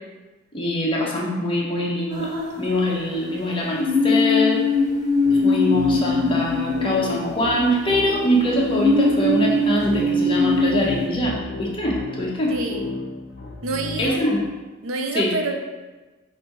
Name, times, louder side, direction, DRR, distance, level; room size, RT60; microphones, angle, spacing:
voice 1, 0.5-2.3 2.6-4.6 5.3-12.6 14.0-14.5 15.1-15.3, equal, 25° left, -4 dB, 0.9 m, -23 dB
sound 1, 2.1-3.2 3.8-7.7 8.7-11.1, left 2 dB, 20° right, 0.7 m, -21 dB
sound 2, 5.2-14.2, left 3 dB, 55° left, 0.7 m, -34 dB
voice 2, 12.5-12.9 13.6-14.2 14.8-15.5, right 2 dB, 85° right, 4 dB, 0.6 m, -27 dB
4.2 x 2.7 x 4.6 m, 1.2 s
head